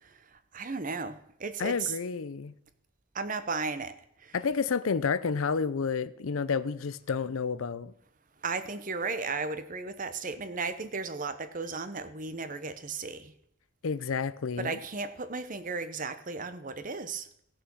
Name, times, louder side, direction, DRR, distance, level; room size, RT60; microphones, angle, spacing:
voice 1, 0.0-1.9 3.1-4.3 8.4-13.3 14.6-17.3, right 4 dB, 40° right, 0.8 m, -35 dB
voice 2, 1.6-2.5 4.3-7.9 13.8-14.8, left 5 dB, 75° left, 0.6 m, -30 dB
16.5 x 6.6 x 6.2 m
head